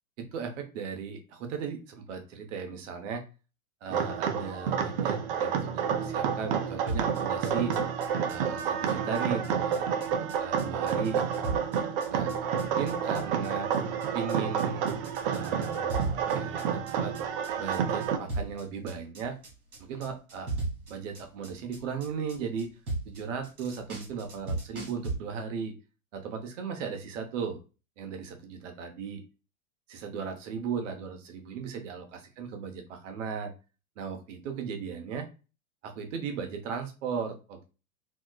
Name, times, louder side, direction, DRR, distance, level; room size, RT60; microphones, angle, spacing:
voice 1, 0.2-3.2 3.8-7.8 8.3-9.8 10.4-11.2 12.1-13.7 14.1-14.8 15.2-17.2 17.6-19.4 19.8-20.5 20.9-22.7 23.1-25.7 26.1-27.6 28.0-29.2 29.9-33.5 34.0-35.3 35.8-37.7, right 6 dB, 60° right, 5 dB, 0.9 m, -36 dB
sound 1, 3.9-18.2, right 7 dB, 40° right, 0.5 m, -29 dB
sound 2, 6.9-25.1, right 2 dB, 90° right, 1.7 m, -37 dB
4.3 x 2.0 x 2.2 m, 0.31 s
hypercardioid pair, 125°, 43 cm